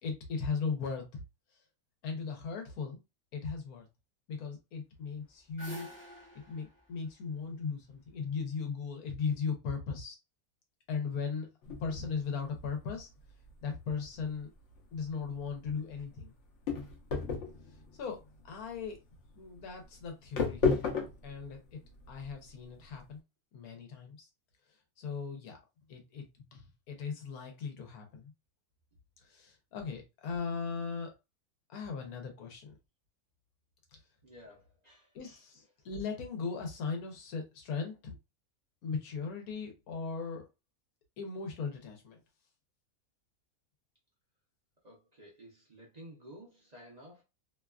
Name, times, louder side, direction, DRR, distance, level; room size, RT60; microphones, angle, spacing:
voice 1, 0.0-1.2 2.0-3.0 3.3-3.9 4.3-5.9 6.5-10.2 10.9-11.5 11.8-13.1 13.6-14.5 14.9-16.3 17.9-18.2 18.4-19.0 19.4-20.7 21.2-21.8 22.1-23.2 23.5-24.3 25.0-25.6 25.9-28.3 29.2-31.1 31.7-32.7 35.1-38.1 38.8-40.5 41.2-42.2, left 5 dB, 85° left, 1.3 m, -38 dB
sound 1, 5.1-8.2, right 1 dB, 15° left, 0.5 m, -49 dB
sound 2, 11.6-23.0, left 4 dB, 60° left, 0.9 m, -36 dB
voice 2, 34.2-35.4 44.8-47.2, equal, 35° right, 0.7 m, -53 dB
3.0 x 2.3 x 2.3 m
omnidirectional pair, 1.5 m